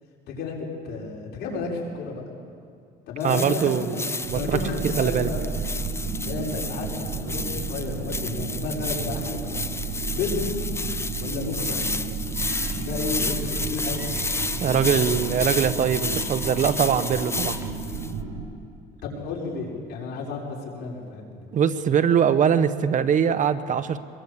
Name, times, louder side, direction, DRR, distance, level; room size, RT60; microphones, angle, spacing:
voice 1, 0.3-2.2 3.1-4.0 4.3-5.4 6.2-9.6 10.1-10.6 11.2-11.8 12.7-14.1 14.7-15.1 17.4-17.5 19.0-21.5, left 4 dB, 75° left, -2 dB, 6.1 m, -32 dB
sound 1, 3.2-18.1, left 3 dB, 15° left, 0.8 m, -32 dB
voice 2, 3.2-4.6 4.8-5.3 14.6-17.5 21.5-24.0, right 8 dB, 50° right, 12 dB, 1.1 m, -22 dB
sound 2, 4.2-18.4, right 5 dB, 85° right, 7.4 m, -32 dB
sound 3, 11.6-17.7, right 2 dB, 15° right, 4.1 m, -44 dB
25.0 x 22.5 x 8.5 m, 2.3 s
cardioid pair, 110°, 17 cm